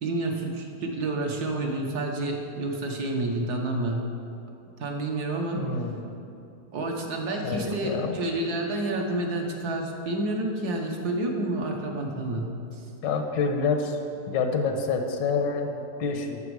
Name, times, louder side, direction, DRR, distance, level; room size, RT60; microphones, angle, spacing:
voice 1, 0.0-4.0 4.8-5.6 6.7-12.8, right 2 dB, 65° right, 1 dB, 1.6 m, -29 dB
voice 2, 5.6-6.0 7.4-8.2 13.0-14.0 14.3-16.5, left 4 dB, 85° left, 4 dB, 1.6 m, -27 dB
11.5 x 7.3 x 4.8 m, 2.7 s
omnidirectional pair, 1.9 m